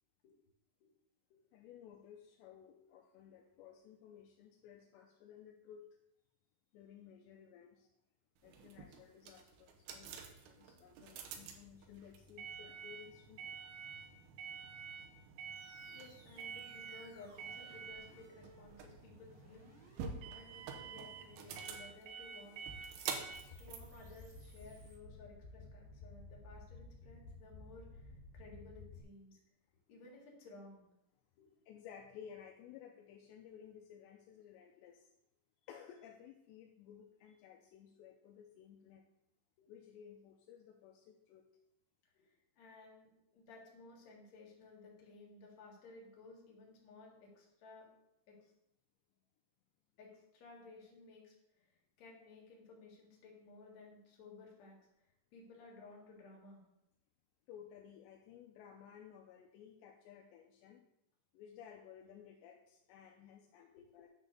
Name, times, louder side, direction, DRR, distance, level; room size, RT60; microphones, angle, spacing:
voice 1, 1.5-5.9 6.7-7.9 8.4-13.4 31.7-35.1 35.6-39.0 39.7-41.4 57.5-60.8 61.3-64.1, left 8 dB, 80° left, 3 dB, 2.7 m, -56 dB
sound 1, 8.4-24.9, right 6 dB, 75° right, 2.4 m, -48 dB
sound 2, 15.5-25.0, right 1 dB, 35° right, 2.5 m, -65 dB
voice 2, 15.9-19.7 20.3-22.6 23.6-29.4 29.9-30.8 31.4-31.5 42.1-42.3 42.6-43.1 43.3-47.9 48.3-48.5 50.0-51.7 52.0-54.8 55.3-56.6 63.7-63.8, left 3 dB, 50° left, -2 dB, 2.7 m, -57 dB
sound 3, 23.3-29.0, left 2 dB, 65° left, 3.7 m, -54 dB
9.7 x 4.1 x 6.7 m, 0.84 s
omnidirectional pair, 5.4 m